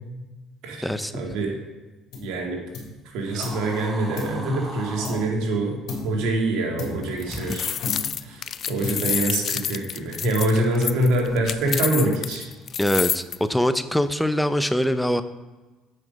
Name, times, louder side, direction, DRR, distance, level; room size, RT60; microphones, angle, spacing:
voice 1, 1.1-1.6 2.2-2.6 3.1-5.8 6.0-7.7 8.2-8.4 8.7-12.4, right 1 dB, 75° right, 0 dB, 2.3 m, -25 dB
sound 1, 2.1-2.4 2.7-3.7 4.2-5.5 5.9-6.3 6.8-7.5 7.8-8.3 8.8-9.4, left 3 dB, 70° left, 3.2 m, -35 dB
sound 2, 3.2-5.3, right 2 dB, 30° right, 1.6 m, -37 dB
sound 3, 7.0-13.4, left 8 dB, 50° left, 0.4 m, -28 dB
voice 2, 12.8-13.2 13.5-15.2, equal, 5° left, 11 dB, 0.6 m, -23 dB
8.2 x 5.8 x 5.3 m, 1.2 s
supercardioid pair, 90°, 0 cm